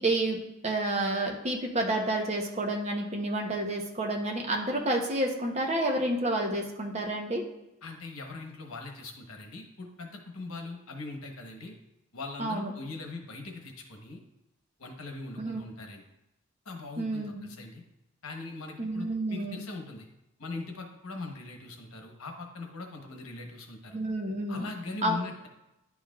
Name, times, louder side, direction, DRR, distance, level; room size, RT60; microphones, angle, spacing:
voice 1, 0.0-7.4 12.4-12.7 15.4-15.6 17.0-17.5 18.8-19.6 23.9-24.7 25.0-25.2, right 1 dB, 30° right, 1 dB, 0.8 m, -30 dB
voice 2, 7.8-11.8 12.1-14.2 14.8-16.0 16.6-17.8 18.2-20.1 20.4-24.0 24.5-25.5, left 3 dB, 90° left, 3 dB, 1.1 m, -41 dB
10.5 x 4.8 x 2.4 m, 0.91 s
head